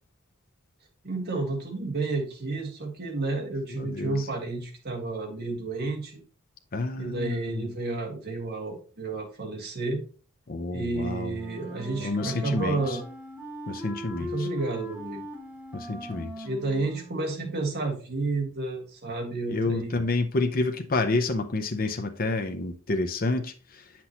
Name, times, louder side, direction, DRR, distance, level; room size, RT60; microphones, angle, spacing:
voice 1, 1.0-6.2 7.0-10.0 10.7-13.0 14.2-15.2 16.4-20.0, right 3 dB, 50° right, 1.9 m, -31 dB
voice 2, 3.8-4.2 6.7-7.7 10.5-11.4 12.0-13.0 13.7-14.5 15.7-16.5 19.5-23.8, left 2 dB, 40° left, 0.7 m, -29 dB
Wind instrument woodwind instrument, 11.3-17.5, equal, 10° right, 1.5 m, -40 dB
8.2 x 5.9 x 2.9 m
head